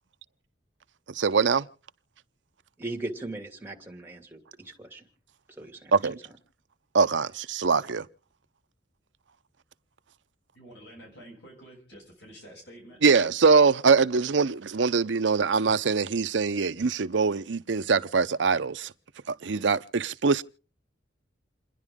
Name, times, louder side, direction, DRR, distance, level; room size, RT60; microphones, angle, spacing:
voice 1, 1.1-1.6 5.9-6.2 6.9-8.1 13.0-18.9 19.3-20.4, right 5 dB, 90° right, 0.7 m, -23 dB
voice 2, 2.8-5.1 5.5-6.0 6.2-6.3, right 2 dB, 10° right, 2.5 m, -38 dB
voice 3, 10.5-13.1, right 1 dB, 75° left, 7.1 m, -49 dB
29.0 x 10.5 x 3.6 m
head